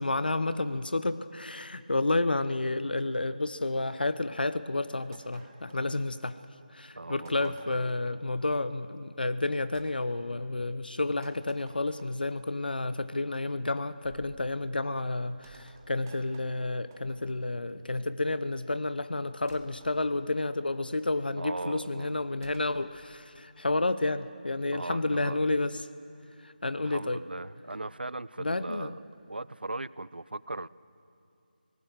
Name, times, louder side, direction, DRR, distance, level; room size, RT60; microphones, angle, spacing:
voice 1, 0.0-6.4 6.7-25.8 26.4-27.2 28.4-28.9, left 2 dB, 70° left, 13 dB, 0.8 m, -30 dB
sound 1, 5.1-6.5 7.3-8.1 9.7-9.9 11.2-12.3 14.0-14.5 15.4-17.5 19.5-20.0 22.4-22.8, right 4 dB, 20° right, 1.4 m, -55 dB
voice 2, 7.0-7.8 21.4-22.1 24.7-25.4 26.7-30.7, right 2 dB, 80° right, 20 dB, 0.5 m, -38 dB
25.5 x 19.0 x 6.4 m, 2.5 s
figure-of-eight pair, 160°, 5 cm